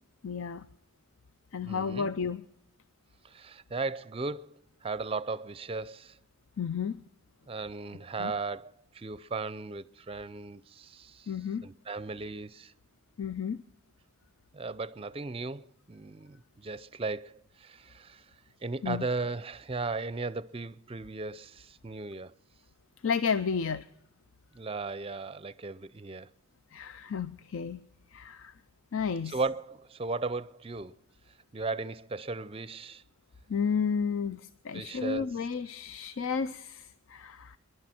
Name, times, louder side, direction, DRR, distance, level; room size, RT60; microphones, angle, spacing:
voice 1, 0.2-0.7 1.5-2.5 6.6-7.0 8.2-8.3 11.3-11.7 13.2-13.6 18.8-19.1 23.0-23.9 26.7-27.8 28.1-28.5 28.9-29.4 33.5-37.6, left 6 dB, 70° left, 0.5 m, -32 dB
voice 2, 1.7-2.1 3.2-4.5 4.8-6.2 7.5-11.3 11.6-12.7 14.5-18.3 18.6-22.3 24.5-26.3 29.3-30.9 31.5-33.0 34.7-35.3, right 3 dB, 25° right, 0.5 m, -36 dB
28.5 x 11.0 x 4.3 m
head